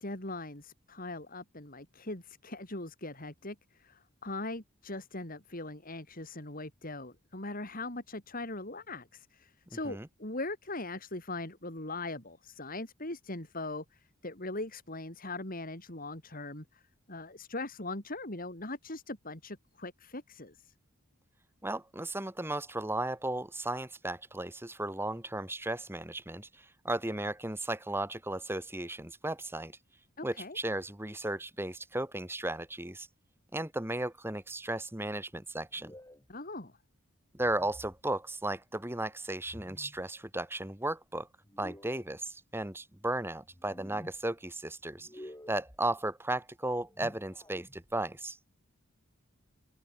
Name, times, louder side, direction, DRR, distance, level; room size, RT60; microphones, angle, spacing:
voice 1, 0.0-16.8 17.1-20.7 30.2-30.6 36.3-36.7, left 2 dB, 40° left, 4.6 m, -40 dB
voice 2, 21.6-29.8 30.2-33.1 33.5-35.9 37.3-41.3 41.6-48.4, right 1 dB, 10° right, 1.9 m, -35 dB
sound 1, 35.7-36.3 37.4-38.0 39.4-40.0 41.4-42.1 43.4-44.2 44.9-45.8 46.7-48.0, equal, 15° left, 5.1 m, -51 dB
head